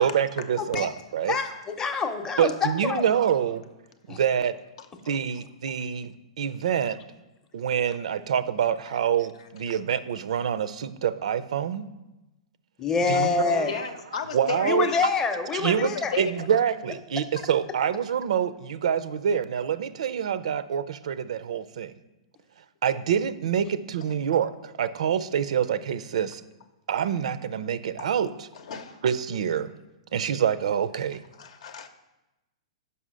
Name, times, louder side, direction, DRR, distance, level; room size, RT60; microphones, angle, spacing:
voice 1, 0.0-1.4 2.4-3.6 4.1-4.6 5.1-7.0 7.5-11.9 13.1-13.8 14.3-14.9 15.5-21.9 22.8-26.4 26.9-28.5 29.0-29.7 30.1-31.2, right 8 dB, 75° right, 14 dB, 0.4 m, -26 dB
voice 2, 1.8-3.0 4.1-4.2 12.8-13.7 14.6-16.1, left 5 dB, 15° left, 6 dB, 0.6 m, -26 dB
voice 3, 13.7-14.9 15.8-16.5 28.0-28.1 28.5-29.0 31.3-31.9, left 7 dB, 70° left, 9 dB, 0.7 m, -34 dB
5.5 x 5.5 x 6.2 m, 1.0 s
hypercardioid pair, 140°, 3 cm